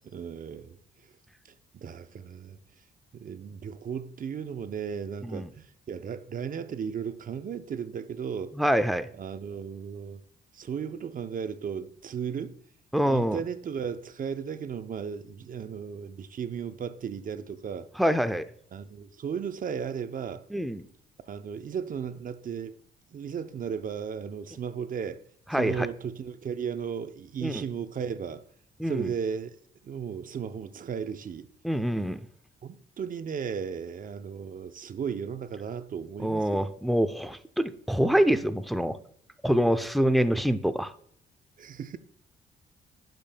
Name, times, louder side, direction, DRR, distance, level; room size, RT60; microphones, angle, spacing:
voice 1, 0.0-0.8 1.7-2.6 3.1-8.6 9.2-10.2 10.5-12.6 13.0-17.9 18.7-20.4 21.3-22.8 23.1-25.2 25.5-28.4 28.8-29.5 29.8-31.5 32.6-36.7 41.6-42.0, right 7 dB, 45° right, 0.6 m, -35 dB
voice 2, 8.6-9.1 12.9-13.4 18.0-18.5 20.5-20.8 25.5-25.9 27.4-27.6 28.8-29.1 31.6-32.2 36.2-39.0 39.4-40.9, equal, ahead, 0.5 m, -25 dB
11.5 x 5.2 x 2.2 m
cardioid pair, 90°, 20 cm